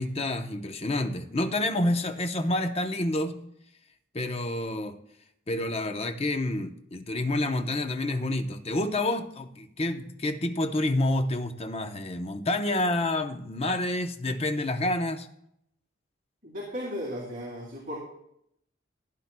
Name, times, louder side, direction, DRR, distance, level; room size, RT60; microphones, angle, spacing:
voice 1, 0.0-3.4 4.1-5.0 5.5-15.3, left 1 dB, 30° left, 6 dB, 0.8 m, -28 dB
voice 2, 16.4-18.0, equal, 45° right, -5 dB, 2.8 m, -35 dB
16.0 x 9.8 x 2.3 m, 0.74 s
head